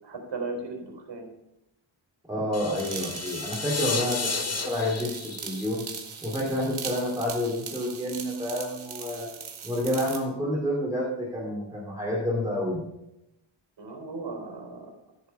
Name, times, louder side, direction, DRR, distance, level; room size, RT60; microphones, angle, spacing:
voice 1, 0.0-1.3 13.8-14.9, right 3 dB, 60° right, 0 dB, 4.0 m, -36 dB
voice 2, 2.3-4.3 4.6-5.9 6.2-9.3 9.6-12.8, left 1 dB, 5° right, -6 dB, 2.7 m, -29 dB
sound 1, 2.5-6.6, left 4 dB, 30° left, 1.2 m, -33 dB
sound 2, 2.8-10.3, right 6 dB, 85° right, 1.9 m, -40 dB
15.5 x 6.9 x 5.5 m, 0.86 s
wide cardioid pair, 180°, 48 cm